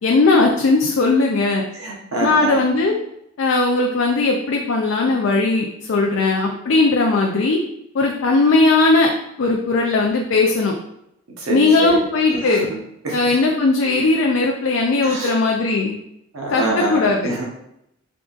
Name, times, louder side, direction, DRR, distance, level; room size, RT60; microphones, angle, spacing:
voice 1, 0.0-1.6 2.2-2.9 3.4-7.6 7.9-9.1 9.4-10.7 11.5-12.7 13.1-15.9 16.5-17.3, left 3 dB, 60° left, 1 dB, 0.4 m, -18 dB
voice 2, 1.7-2.6 11.4-12.0 12.3-12.8 13.0-13.2 15.0-15.4 16.3-17.4, right 2 dB, 80° right, -2 dB, 1.0 m, -25 dB
3.7 x 3.6 x 2.4 m, 0.80 s
head